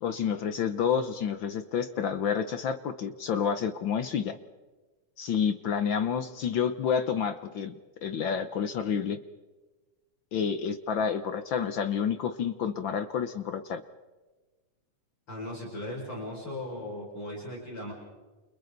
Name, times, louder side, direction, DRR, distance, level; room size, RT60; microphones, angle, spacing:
voice 1, 0.0-4.4 5.2-9.2 10.3-13.8, left 7 dB, 70° left, 9 dB, 1.1 m, -29 dB
voice 2, 15.3-17.9, left 1 dB, 45° left, -3 dB, 6.7 m, -37 dB
30.0 x 29.5 x 4.0 m, 1.2 s
omnidirectional pair, 3.3 m